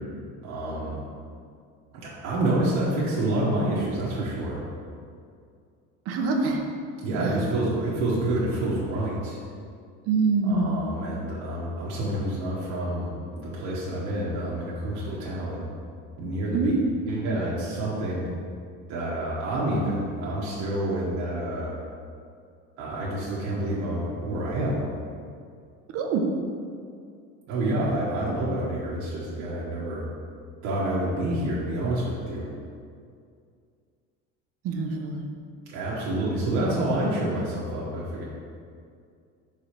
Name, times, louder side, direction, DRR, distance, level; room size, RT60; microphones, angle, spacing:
voice 1, 0.4-1.0 1.9-4.6 7.0-9.4 10.4-15.6 16.2-16.7 17.0-18.3 18.9-21.8 22.8-24.9 27.5-30.1 30.6-32.5 35.7-38.2, right 1 dB, 70° right, -7 dB, 1.3 m, -28 dB
voice 2, 6.1-6.6 7.2-7.3 10.1-10.8 16.5-16.7 25.9-26.3 34.6-35.3, right 4 dB, 50° right, 2 dB, 0.8 m, -25 dB
5.0 x 3.9 x 5.7 m, 2.3 s
cardioid pair, 165°, 30 cm